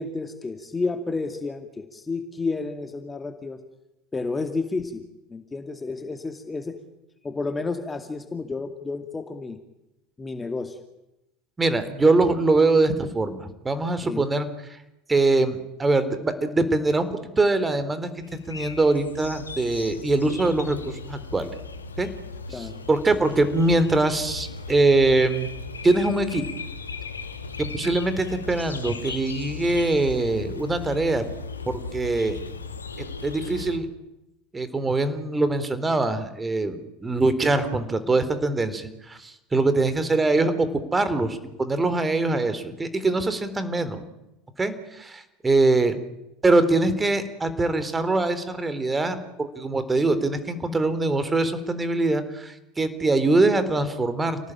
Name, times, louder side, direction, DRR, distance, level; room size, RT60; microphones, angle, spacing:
voice 1, 0.0-3.6 4.1-5.0 5.3-6.8 7.2-9.6 10.2-10.8 14.0-14.3 22.5-22.8, left 3 dB, 15° left, 7 dB, 2.4 m, -31 dB
voice 2, 11.6-14.5 15.1-18.1 18.5-21.5 22.0-22.1 22.5-25.5 25.8-26.4 27.7-31.2 31.7-32.4 33.0-33.9 34.5-44.0 44.6-46.0 46.4-54.4, right 2 dB, 15° right, 12 dB, 3.6 m, -23 dB
sound 1, 18.2-33.8, left 4 dB, 85° left, 2.1 m, -37 dB
29.5 x 18.5 x 9.0 m, 0.93 s
figure-of-eight pair, 75°, 0 cm